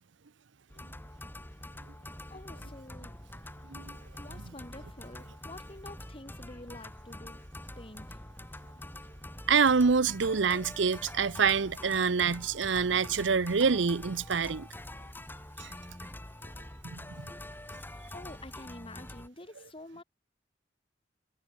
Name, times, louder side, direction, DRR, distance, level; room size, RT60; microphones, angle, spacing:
sound 1, 0.7-19.3, left 1 dB, 10° left, 3.2 m, -45 dB
voice 1, 2.3-3.2 4.2-8.2 14.9-15.3 17.4-20.0, left 1 dB, 30° left, 4.6 m, -49 dB
voice 2, 9.5-14.7 15.6-15.7 16.8-17.3, right 5 dB, 70° right, 0.7 m, -26 dB
head